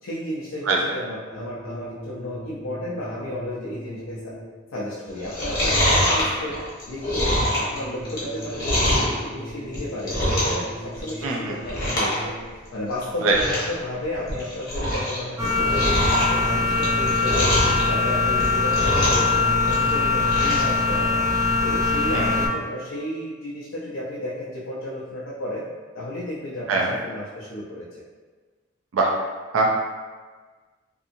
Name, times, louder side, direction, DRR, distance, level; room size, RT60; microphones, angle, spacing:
voice 1, 0.0-4.3 4.7-6.6 6.9-12.3 12.7-17.6 17.8-21.2 21.6-25.6 25.9-27.8, left 1 dB, 90° left, -6 dB, 0.5 m, -33 dB
sound 1, 1.3-4.7 7.7-12.7, equal, 50° right, 1.2 m, -39 dB
Chewing mastication, 5.2-9.2 9.6-10.7 10.9-11.3 11.6-12.2 12.4-12.5 13.0-13.1 13.3-13.7 14.1-15.2 15.4-17.8 18.3-19.3 19.6-20.7 21.1-21.2, equal, 50° left, 1.1 m, -24 dB
voice 2, 11.2-11.5 13.2-13.3 22.1-22.3 26.7-26.9 28.9-29.1 29.5-29.7, right 3 dB, 80° right, -1 dB, 0.4 m, -21 dB
sound 2, 15.4-22.5, left 3 dB, 15° right, 0.4 m, -22 dB
2.7 x 2.6 x 2.5 m, 1.4 s
head